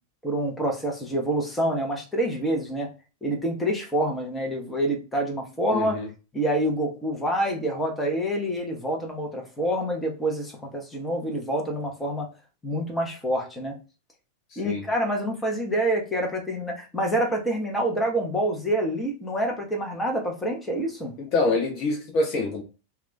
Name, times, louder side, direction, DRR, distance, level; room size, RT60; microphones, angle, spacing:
voice 1, 0.2-2.9 3.2-6.0 6.3-12.3 12.6-13.7 14.6-21.1, right 1 dB, 10° left, 0.8 m, -27 dB
voice 2, 5.7-6.1 14.5-14.8 21.3-22.6, left 2 dB, 40° left, 0.6 m, -25 dB
2.4 x 2.3 x 3.7 m
figure-of-eight pair, 90°, 0 cm